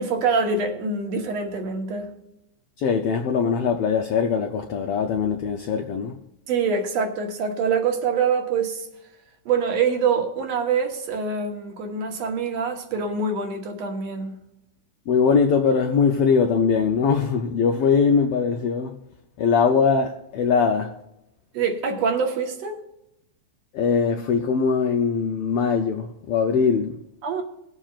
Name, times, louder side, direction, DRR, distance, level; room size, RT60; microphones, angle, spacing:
voice 1, 0.0-2.1 6.5-8.9 9.5-14.4 21.5-22.8 27.2-27.4, right 5 dB, 65° right, 2.3 m, -25 dB
voice 2, 2.8-6.1 15.1-19.0 19.4-20.9 23.7-27.0, left 5 dB, 85° left, 1.3 m, -21 dB
21.0 x 7.4 x 2.5 m
omnidirectional pair, 3.5 m